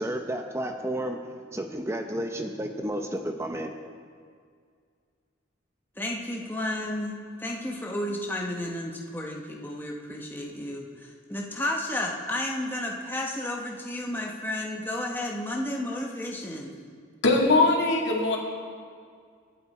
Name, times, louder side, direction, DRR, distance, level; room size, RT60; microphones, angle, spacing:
voice 1, 0.0-3.7, right 1 dB, 15° right, 4 dB, 0.7 m, -32 dB
voice 2, 6.0-7.1 7.4-16.8, left 1 dB, 10° left, -1 dB, 1.2 m, -32 dB
voice 3, 17.2-18.4, left 2 dB, 70° left, -1 dB, 2.3 m, -21 dB
23.5 x 8.4 x 4.3 m, 2.1 s
head